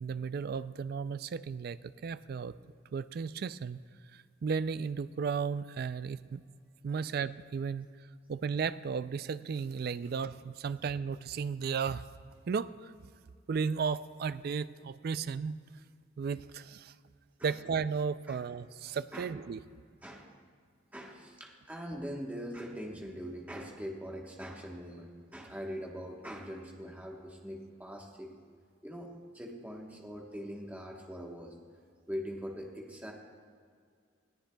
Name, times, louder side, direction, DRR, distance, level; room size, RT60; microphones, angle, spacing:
voice 1, 0.0-2.5 2.9-3.8 4.1-6.4 6.8-7.9 8.3-12.0 12.5-12.9 13.5-15.6 16.2-16.9 17.4-19.6, right 6 dB, 50° right, 15 dB, 0.3 m, -34 dB
voice 2, 20.9-28.3 28.8-29.1 29.3-31.5 32.1-33.1, equal, 10° right, -1 dB, 1.1 m, -42 dB
20.0 x 14.5 x 2.3 m, 2.1 s
head